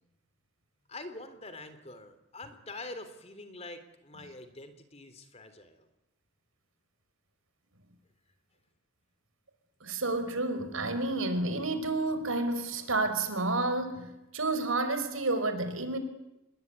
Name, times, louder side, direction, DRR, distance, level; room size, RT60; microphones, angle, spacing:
voice 1, 0.9-5.9, left 2 dB, 30° left, 3.3 m, -45 dB
voice 2, 9.8-16.0, right 2 dB, 70° right, 4.9 m, -30 dB
27.5 x 22.0 x 9.7 m
head